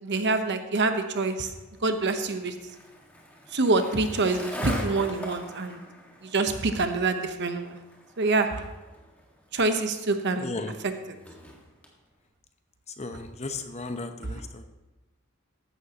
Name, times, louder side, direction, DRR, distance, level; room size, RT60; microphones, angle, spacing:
voice 1, 0.0-1.5 1.8-2.5 3.5-5.8 6.2-7.8 8.2-8.6 9.5-10.4, right 3 dB, 55° right, 7 dB, 1.0 m, -26 dB
Skateboard, 1.4-11.9, equal, 5° left, 1.8 m, -42 dB
voice 2, 10.4-10.7 13.0-14.7, left 3 dB, 30° left, 7 dB, 0.9 m, -35 dB
15.0 x 11.5 x 3.0 m, 1.1 s
head